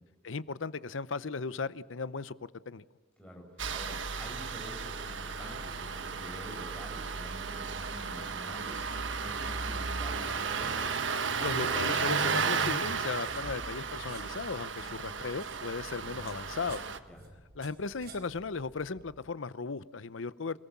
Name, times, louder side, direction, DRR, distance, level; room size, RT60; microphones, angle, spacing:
voice 1, 0.2-2.8 11.4-16.8 17.6-20.6, left 4 dB, 85° left, 16 dB, 0.8 m, -36 dB
Engine starting, 3.6-17.0, right 5 dB, 75° right, 1.3 m, -34 dB
voice 2, 3.7-8.8 9.2-10.7 17.1-17.2, equal, 5° left, 0 dB, 7.0 m, -47 dB
sound 1, 9.9-19.2, right 2 dB, 55° right, 4.3 m, -54 dB
28.5 x 18.5 x 7.3 m, 1.5 s
head